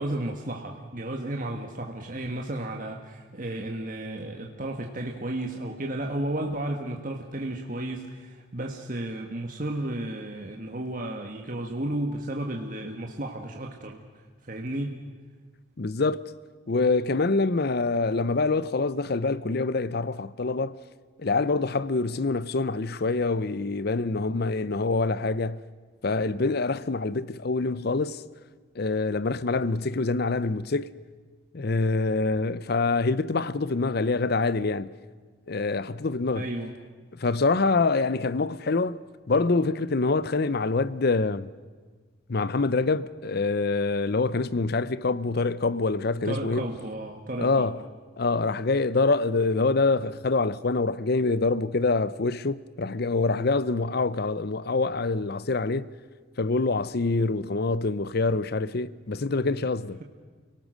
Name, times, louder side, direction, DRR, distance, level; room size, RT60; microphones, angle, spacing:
voice 1, 0.0-14.0 14.4-15.0 36.3-36.7 46.2-47.7, right 1 dB, 45° right, 1.5 m, -33 dB
voice 2, 15.8-16.2 16.7-20.8 21.2-25.6 26.0-28.2 28.8-30.9 31.5-34.9 35.5-36.5 37.1-41.5 42.3-46.7 47.4-47.8 48.2-55.9 56.4-60.0, left 3 dB, 55° left, 0.6 m, -25 dB
29.5 x 18.0 x 6.4 m
head